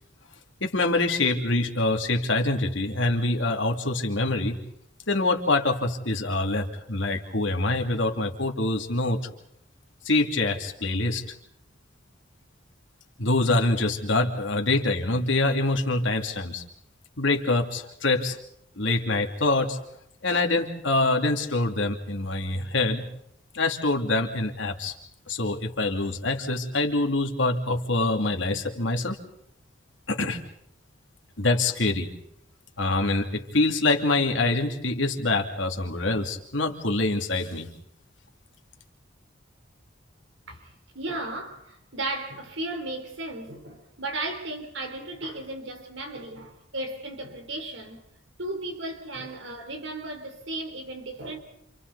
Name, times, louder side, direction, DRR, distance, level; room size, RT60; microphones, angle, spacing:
voice 1, 0.6-4.6 5.1-9.2 10.0-11.2 13.2-16.6 17.2-18.4 18.8-19.8 20.2-23.0 23.5-24.9 25.3-29.2 30.1-30.4 31.4-32.1 32.8-37.7, left 2 dB, 75° left, 2.7 m, -25 dB
voice 2, 40.5-48.1 48.4-51.4, right 2 dB, 70° right, 3.7 m, -35 dB
29.5 x 28.0 x 4.1 m
head